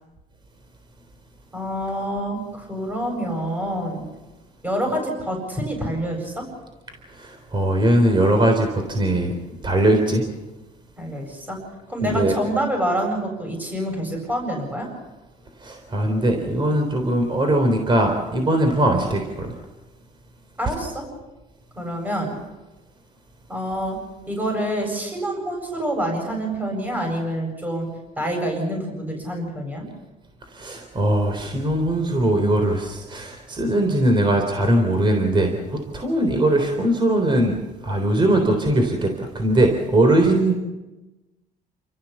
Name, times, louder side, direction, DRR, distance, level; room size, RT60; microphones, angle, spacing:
voice 1, 1.5-4.0 4.6-6.4 11.0-11.6 11.9-14.9 20.6-21.0 21.7-22.4 23.5-24.0 24.3-27.9 28.2-29.8, right 1 dB, 10° right, 1 dB, 7.7 m, -27 dB
voice 2, 7.1-9.3 9.6-10.2 12.0-12.4 15.6-19.5 30.5-40.6, right 1 dB, 30° right, 4 dB, 3.7 m, -20 dB
29.0 x 14.5 x 7.2 m, 1.1 s
cardioid pair, 110°, 17 cm